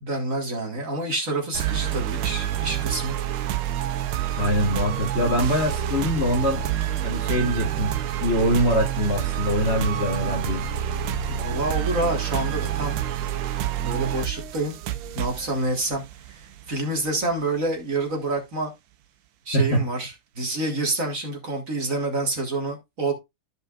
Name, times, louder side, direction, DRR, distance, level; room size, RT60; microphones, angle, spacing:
voice 1, 0.0-3.2 11.3-13.0 13.8-14.7 15.1-16.0 16.3-18.7 19.5-23.1, right 2 dB, 40° right, 2.0 m, -27 dB
sound 1, 1.5-17.3, right 10 dB, 85° right, 1.6 m, -28 dB
voice 2, 4.4-6.6 7.0-10.6 19.5-19.8, equal, 35° left, 1.3 m, -23 dB
13.5 x 5.4 x 2.4 m
omnidirectional pair, 2.3 m